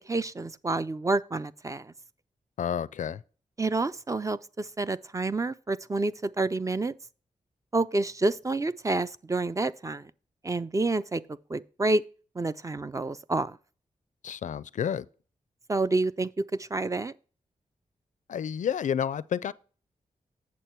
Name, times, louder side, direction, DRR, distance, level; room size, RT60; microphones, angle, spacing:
voice 1, 0.1-1.9 3.6-6.9 7.7-10.1 10.4-11.2 11.5-12.0 12.4-13.6 15.7-17.1, right 2 dB, 25° right, 0.4 m, -28 dB
voice 2, 2.6-3.2 14.2-15.1 18.3-19.5, left 8 dB, 70° left, 0.4 m, -30 dB
8.4 x 6.8 x 4.5 m
cardioid pair, 70°, 13 cm